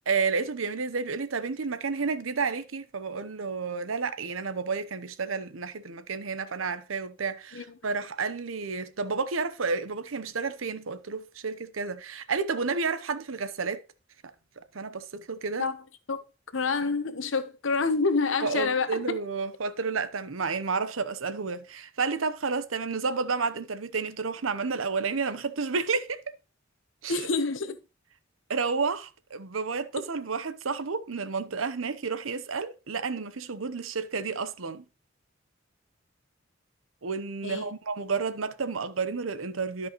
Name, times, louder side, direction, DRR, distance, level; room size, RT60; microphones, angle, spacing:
voice 1, 0.0-13.8 14.7-15.7 18.4-26.2 27.0-27.3 28.5-34.8 37.0-39.9, right 4 dB, 80° right, 0.8 m, -31 dB
voice 2, 16.5-18.9 27.1-27.8 37.4-37.7, left 4 dB, 70° left, 0.9 m, -27 dB
13.0 x 5.4 x 3.0 m
head